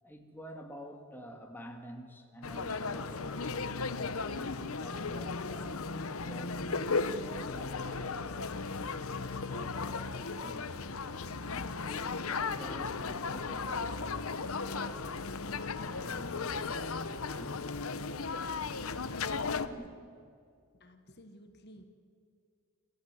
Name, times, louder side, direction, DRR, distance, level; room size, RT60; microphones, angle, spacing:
voice 1, 0.0-3.9 4.3-5.8 6.2-8.7 9.2-10.8 11.4-15.1 15.8-17.9 19.5-19.9, equal, 10° left, 3 dB, 2.0 m, -49 dB
sound 1, 2.4-19.7, left 4 dB, 70° left, 1.0 m, -36 dB
voice 2, 20.7-21.8, equal, 45° left, 7 dB, 1.4 m, -54 dB
27.0 x 15.0 x 9.7 m, 2.3 s
head